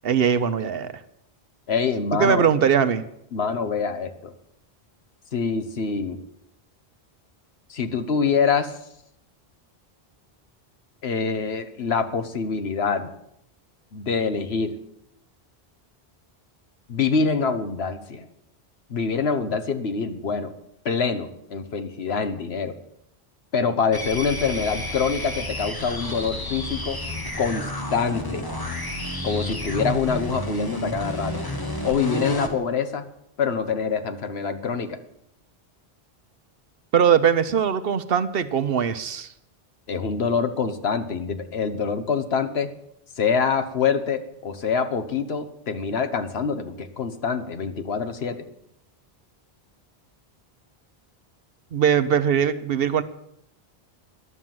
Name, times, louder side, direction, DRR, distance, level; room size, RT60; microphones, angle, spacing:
voice 1, 0.0-0.9 2.2-3.0 36.9-39.3 51.7-53.0, right 7 dB, 65° right, 12 dB, 0.9 m, -21 dB
voice 2, 1.7-2.5 3.3-4.3 5.3-6.2 7.7-8.8 11.0-13.1 13.9-14.7 16.9-18.3 18.9-20.5 20.8-22.8 23.5-27.0 27.4-28.5 29.2-31.4 31.8-33.0 33.4-35.0 39.9-42.7 43.2-48.5, left 5 dB, 80° left, 9 dB, 1.3 m, -25 dB
sound 1, 23.9-32.6, left 1 dB, 20° left, 1.3 m, -31 dB
11.0 x 7.4 x 9.3 m, 0.76 s
omnidirectional pair, 1.1 m